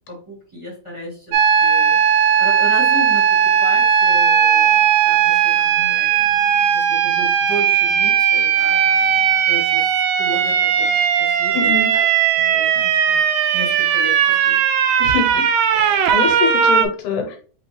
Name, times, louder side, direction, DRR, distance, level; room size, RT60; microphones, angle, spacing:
voice 1, 0.1-1.3 1.6-1.9 2.4-9.9 10.2-12.0 12.3-13.2 13.5-14.6, equal, 10° right, -5 dB, 1.6 m, -34 dB
sound 1, 1.3-16.9, right 8 dB, 90° right, 1.4 m, -17 dB
voice 2, 11.5-11.9 15.0-15.4 15.7-17.4, left 5 dB, 80° left, 4 dB, 2.3 m, -24 dB
4.0 x 3.9 x 3.2 m, 0.41 s
omnidirectional pair, 3.6 m